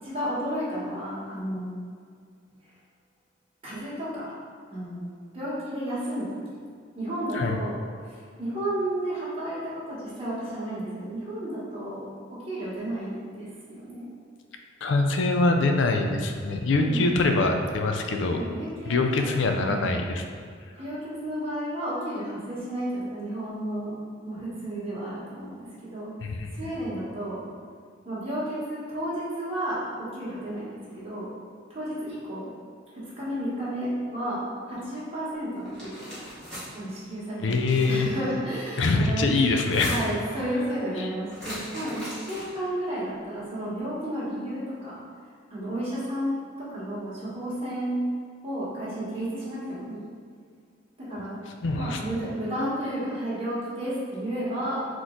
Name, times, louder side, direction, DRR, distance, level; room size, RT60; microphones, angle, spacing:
voice 1, 0.0-1.7 3.6-4.3 4.7-6.6 6.9-7.7 8.0-12.1 12.4-14.1 16.8-17.1 18.3-19.3 19.7-19.9 20.7-24.0 24.2-26.1 26.5-27.4 28.0-31.3 31.7-32.5 32.9-36.2 36.7-39.3 39.8-45.0 45.5-48.0 48.4-50.1 51.0-51.4 51.8-54.9, right 1 dB, 30° right, -10 dB, 1.4 m, -32 dB
voice 2, 14.8-18.6 18.9-20.2 26.2-26.5 37.4-38.1 38.8-40.0 41.0-41.1 51.6-52.0, left 3 dB, 70° left, 4 dB, 0.4 m, -24 dB
sound 1, 35.6-36.7 37.4-38.0 39.5-40.2 41.3-42.7, equal, 5° left, 1.5 m, -39 dB
4.1 x 3.1 x 3.8 m, 2.1 s
head